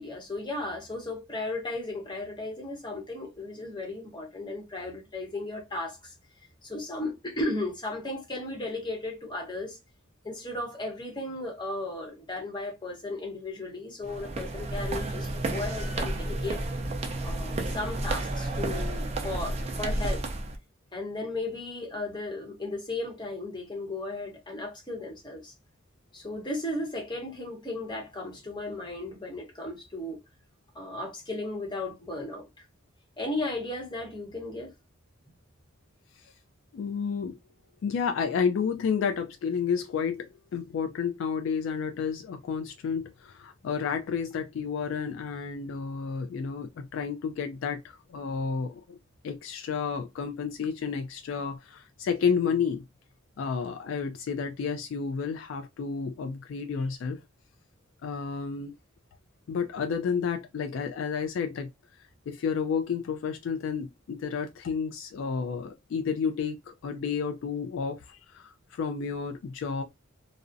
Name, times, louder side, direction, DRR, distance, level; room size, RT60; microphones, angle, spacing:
voice 1, 0.0-6.1 6.6-9.8 10.2-16.6 17.2-20.2 20.9-25.5 26.1-30.2 30.7-32.6 33.2-34.7, left 2 dB, 20° left, 0.8 m, -35 dB
sound 1, 14.0-20.6, right 2 dB, 30° right, 0.4 m, -31 dB
voice 2, 36.7-37.4 37.8-49.0 49.2-52.8 53.4-57.2 58.0-58.7 59.5-61.7 62.3-69.8, left 6 dB, 65° left, 0.3 m, -31 dB
2.4 x 2.0 x 2.5 m
head